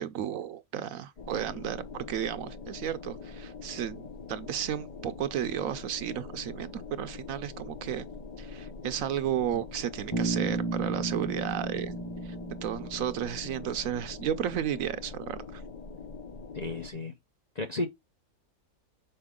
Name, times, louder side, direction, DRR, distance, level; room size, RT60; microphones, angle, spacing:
voice 1, 0.0-8.1 8.4-12.0 12.2-12.4 12.6-15.6, right 10 dB, 70° right, 1.0 m, -33 dB
sound 1, 1.2-16.9, left 4 dB, 80° left, 0.3 m, -44 dB
Bass guitar, 10.1-14.0, right 3 dB, 20° left, 1.0 m, -34 dB
voice 2, 16.5-17.1 17.5-17.9, left 2 dB, 40° left, 0.6 m, -33 dB
6.6 x 4.7 x 3.6 m
omnidirectional pair, 1.6 m